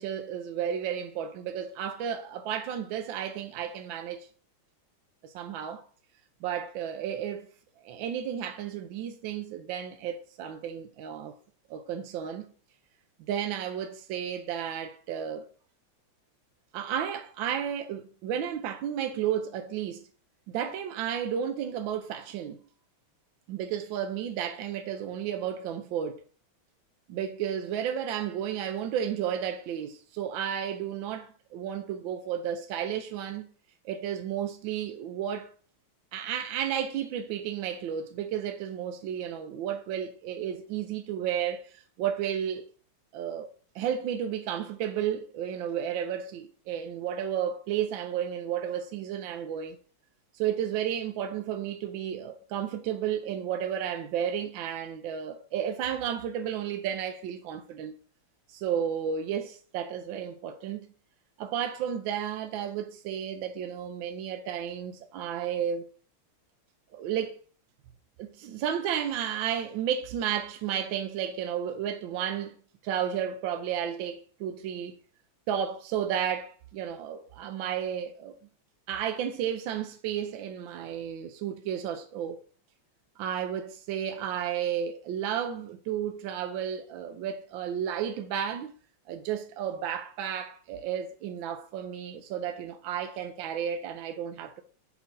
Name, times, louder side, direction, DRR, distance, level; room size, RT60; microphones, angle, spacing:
voice 1, 0.0-4.3 5.2-5.9 6.4-7.5 7.8-11.3 11.7-12.5 13.3-15.5 16.7-20.1 20.5-22.6 23.5-26.2 27.1-33.4 33.8-35.5 36.1-42.6 43.1-43.5 43.7-49.8 50.3-58.0 58.5-60.9 61.4-65.9 66.9-67.4 68.2-72.5 72.8-74.9 75.5-78.4 78.9-82.4 83.2-88.7 89.1-94.6, right 9 dB, 75° right, 1.2 m, -32 dB
4.7 x 4.5 x 5.3 m
omnidirectional pair, 2.4 m